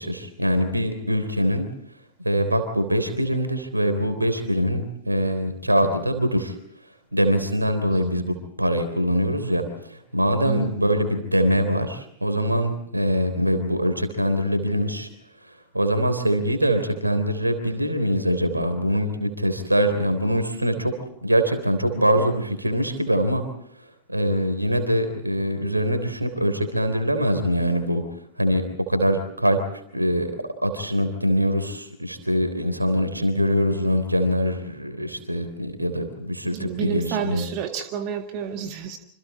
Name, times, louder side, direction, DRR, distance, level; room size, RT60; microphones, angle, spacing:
voice 1, 0.0-1.7 2.2-6.5 7.1-15.1 15.4-21.0 21.2-23.5 23.8-28.0 28.4-29.6 29.9-30.4 30.6-37.5, equal, 85° right, 8 dB, 3.5 m, -23 dB
voice 2, 36.5-39.0, right 7 dB, 40° right, 6 dB, 1.8 m, -30 dB
27.0 x 26.5 x 4.2 m, 0.72 s
figure-of-eight pair, 90°, 0 cm